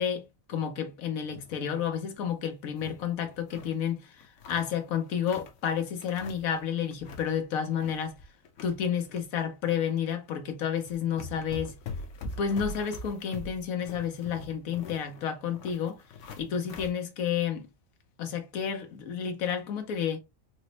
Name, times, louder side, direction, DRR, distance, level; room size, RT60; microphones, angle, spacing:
voice 1, 0.0-4.2 4.5-8.1 8.6-11.7 12.4-16.0 16.4-17.7 18.2-20.2, left 8 dB, 90° left, 1.2 m, -31 dB
sound 1, 1.2-1.7 2.1-2.2 2.5-3.8 4.2-5.6 6.0-6.6 6.9-7.3 7.6-9.2 9.6-9.8 10.5-10.6 10.9-16.9, left 3 dB, 65° left, 1.0 m, -43 dB
4.2 x 2.0 x 2.7 m
omnidirectional pair, 1.4 m